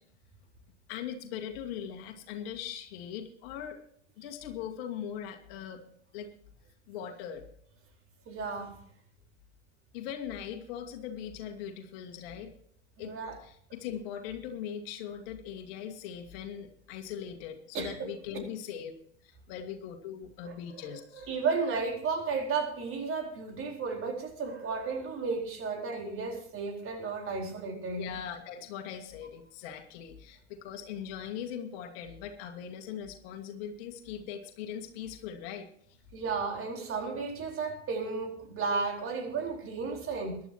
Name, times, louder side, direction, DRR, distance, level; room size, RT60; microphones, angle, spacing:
voice 1, 0.9-3.8 4.2-5.8 6.1-6.3 6.9-7.4 9.9-12.6 13.0-18.9 19.2-21.3 28.0-36.0, left 9 dB, 60° left, 1.9 m, -40 dB
voice 2, 8.3-8.8 13.0-13.3 17.7-18.5 20.4-20.5 20.9-28.1 36.1-40.4, right 4 dB, 40° right, 4.3 m, -33 dB
22.5 x 11.5 x 2.9 m
figure-of-eight pair, 80°, 34 cm